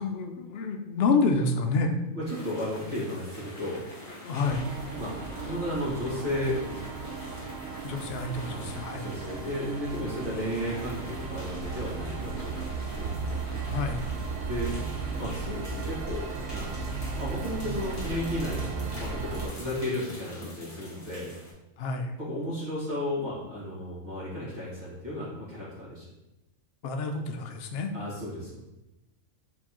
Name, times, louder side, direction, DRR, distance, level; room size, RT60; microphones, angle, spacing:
voice 1, 0.0-1.9 4.2-4.7 7.8-9.1 13.7-14.0 21.8-22.1 26.8-27.9, left 3 dB, 65° left, 5 dB, 0.7 m, -28 dB
voice 2, 2.1-3.8 4.9-5.2 5.5-7.0 8.5-13.1 14.4-14.8 15.1-16.2 16.5-21.3 22.2-26.1 27.9-28.6, left 1 dB, 35° right, -9 dB, 1.9 m, -34 dB
sound 1, 2.2-21.5, left 1 dB, 30° left, 1.3 m, -45 dB
sound 2, 4.4-19.5, right 4 dB, 85° right, 1.0 m, -35 dB
4.3 x 3.9 x 2.9 m, 0.97 s
omnidirectional pair, 1.4 m